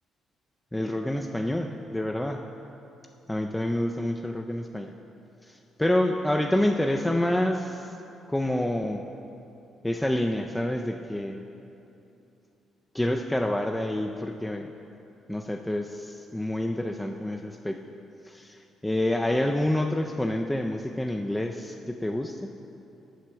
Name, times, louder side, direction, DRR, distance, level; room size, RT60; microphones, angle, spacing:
voice 1, 0.7-2.4 3.3-4.9 5.4-7.9 8.3-9.1 9.8-11.4 12.9-14.7 15.3-17.8 18.3-22.4, left 1 dB, 10° left, 3 dB, 0.3 m, -28 dB
7.5 x 4.4 x 6.0 m, 2.9 s
cardioid pair, 90°, 0 cm